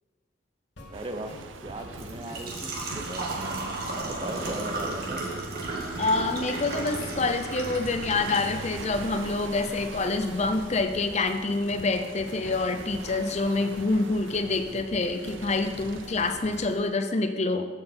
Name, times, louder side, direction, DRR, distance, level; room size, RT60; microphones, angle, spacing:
sound 1, 0.8-16.8, left 1 dB, 60° left, 1.9 m, -46 dB
voice 1, 0.9-1.3 1.6-3.6 3.9-5.5, right 1 dB, 25° right, 6 dB, 0.8 m, -38 dB
sound 2, 0.9-17.0, right 4 dB, 75° right, 0.5 m, -42 dB
Engine / Trickle dribble / Fill (with liquid), 1.2-13.2, right 2 dB, 50° right, 1.8 m, -37 dB
voice 2, 6.0-17.7, left 3 dB, 35° left, 8 dB, 0.6 m, -27 dB
14.5 x 5.8 x 4.4 m, 1.4 s
head